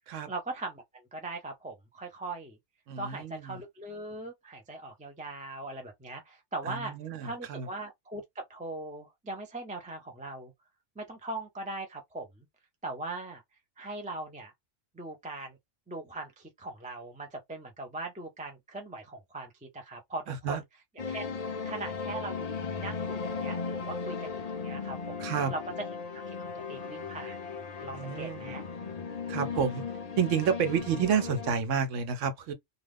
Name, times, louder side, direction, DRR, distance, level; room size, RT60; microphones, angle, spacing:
voice 1, 0.3-2.6 3.0-7.0 7.2-10.5 11.0-12.5 12.8-13.4 13.8-14.5 14.9-15.6 15.9-20.6 21.1-21.2 21.6-25.2 25.5-25.6 26.3-27.4 27.8-28.6 29.4-29.7, right 2 dB, 15° right, 0.3 m, -40 dB
voice 2, 2.9-3.6 6.6-7.7 20.3-20.6 25.2-25.5 27.9-28.5 29.3-29.8 30.2-32.5, right 7 dB, 80° right, 1.0 m, -30 dB
sound 1, 21.0-31.5, left 5 dB, 75° left, 0.3 m, -37 dB
2.4 x 2.3 x 3.3 m
omnidirectional pair, 1.3 m